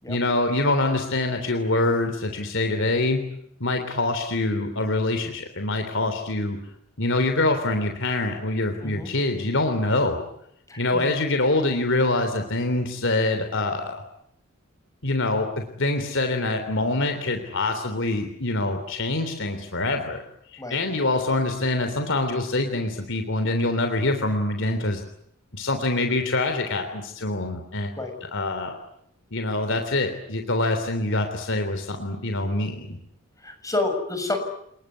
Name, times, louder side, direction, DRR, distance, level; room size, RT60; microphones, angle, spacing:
voice 1, 0.1-3.2 3.6-6.6 7.0-10.2 10.8-14.0 15.0-20.2 20.5-25.0 25.5-27.9 28.2-28.8 29.3-33.0, left 2 dB, 60° left, 6 dB, 3.4 m, -25 dB
voice 2, 10.7-11.0 20.6-20.8 28.0-28.1 33.4-34.4, left 2 dB, 15° left, 6 dB, 6.7 m, -29 dB
29.5 x 20.5 x 9.6 m, 0.73 s
head